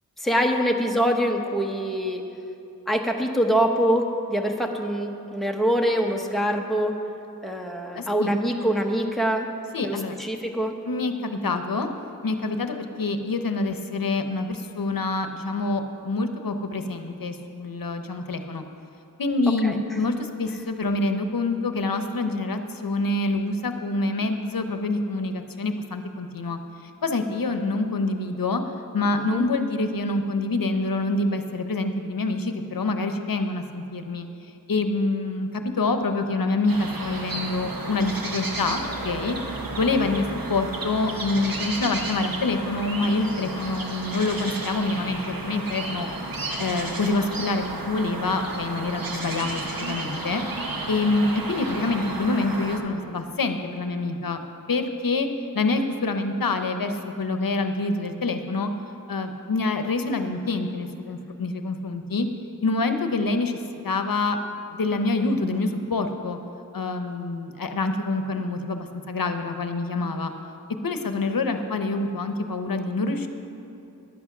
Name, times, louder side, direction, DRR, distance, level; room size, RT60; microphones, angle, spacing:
voice 1, 0.2-2.2 2.9-7.0 7.4-9.5 9.8-10.7 19.6-19.8 29.2-29.4, equal, ahead, 2 dB, 0.9 m, -24 dB
voice 2, 7.9-8.3 9.7-10.2 10.8-11.9 12.2-18.6 19.2-28.6 28.9-34.3 34.7-39.4 39.8-46.1 46.6-50.4 50.9-54.4 54.7-55.3 55.5-58.7 59.1-62.3 62.6-63.6 63.8-64.4 64.7-66.4 66.7-70.3 70.8-73.3, left 3 dB, 70° left, 7 dB, 0.8 m, -26 dB
sound 1, 36.7-52.8, right 2 dB, 70° right, 1.1 m, -32 dB
11.0 x 8.4 x 5.9 m, 2.8 s
wide cardioid pair, 70°, 35 cm